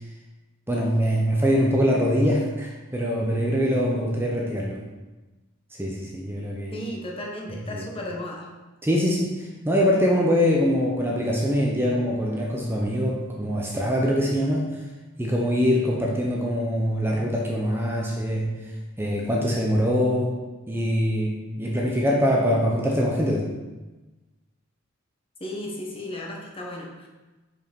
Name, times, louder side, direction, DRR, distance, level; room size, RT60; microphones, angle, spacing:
voice 1, 0.7-4.8 5.8-6.7 7.7-7.8 8.8-14.7 15.2-18.5 19.0-20.4 20.7-23.5, equal, 10° right, -2 dB, 0.7 m, -23 dB
voice 2, 6.7-8.5 25.4-27.1, left 1 dB, 25° left, -1 dB, 1.1 m, -34 dB
5.5 x 4.8 x 5.2 m, 1.2 s
head